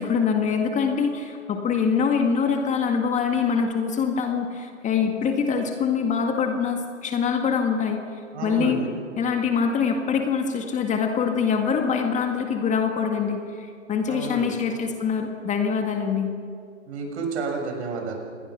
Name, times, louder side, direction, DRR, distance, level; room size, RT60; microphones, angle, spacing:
voice 1, 0.0-8.0 8.4-8.8 9.2-16.3, left 6 dB, 20° left, 4 dB, 1.9 m, -24 dB
voice 2, 8.3-8.9 14.1-14.5 16.9-18.2, right 4 dB, 55° right, 2 dB, 6.6 m, -30 dB
27.0 x 20.5 x 6.1 m, 2.3 s
figure-of-eight pair, 115°, 39 cm